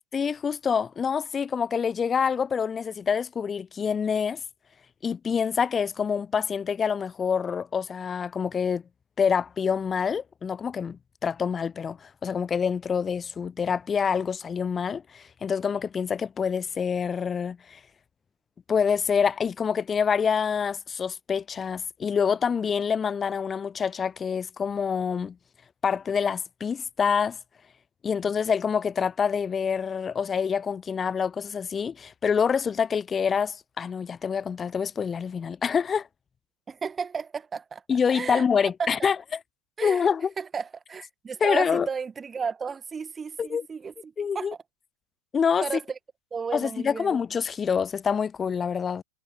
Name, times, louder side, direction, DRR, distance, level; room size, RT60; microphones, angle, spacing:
voice 1, 0.1-4.4 5.0-8.8 9.2-17.8 18.7-25.4 25.8-27.4 28.0-36.1 37.9-39.4 39.8-40.3 41.4-41.9 43.4-43.7 44.2-44.5 45.3-45.7 46.5-49.0, left 6 dB, 20° left, 0.3 m, -26 dB
voice 2, 36.7-37.8 38.1-38.4 38.8-39.1 39.8-40.1 40.4-44.5 45.6-46.0 46.3-47.2, right 5 dB, 15° right, 1.8 m, -33 dB
figure-of-eight pair, 90°, 0 cm